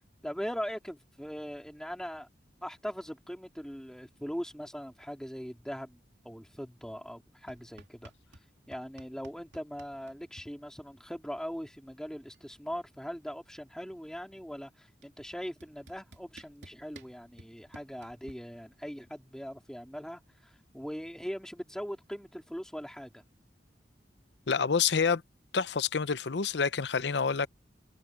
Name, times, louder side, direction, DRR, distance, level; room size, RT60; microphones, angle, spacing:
voice 1, 0.2-2.3 2.6-8.1 8.7-23.2, equal, 5° left, 3.5 m, -40 dB
sound 1, 7.5-8.5 8.7-10.5 11.8-11.9 12.1-12.5 12.8-14.1 15.0-15.1 15.6-18.3, right 2 dB, 80° right, 3.1 m, -53 dB
voice 2, 24.5-25.2 25.5-27.5, left 5 dB, 75° left, 0.7 m, -27 dB
head